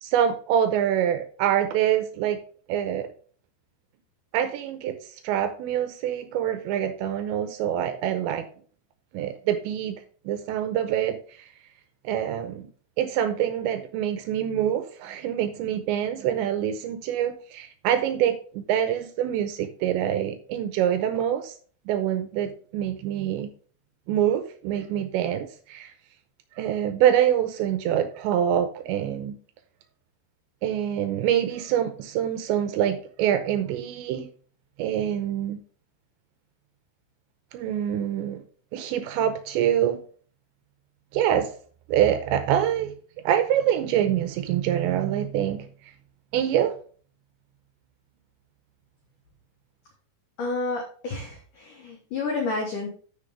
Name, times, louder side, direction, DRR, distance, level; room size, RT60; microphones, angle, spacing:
voice 1, 0.0-2.4 2.7-3.1 4.3-5.0 5.2-8.5 9.1-10.0 10.3-11.5 12.0-12.7 13.0-21.5 21.9-23.5 24.1-25.9 26.6-29.3 30.6-34.3 34.8-35.6 37.5-38.4 38.7-40.0 41.1-41.5 41.9-42.9 43.2-45.7 46.3-46.7, right 10 dB, 85° right, 9 dB, 2.7 m, -25 dB
voice 2, 50.4-52.9, left 3 dB, 90° left, 1 dB, 1.8 m, -30 dB
12.5 x 5.3 x 3.4 m, 0.44 s
omnidirectional pair, 5.8 m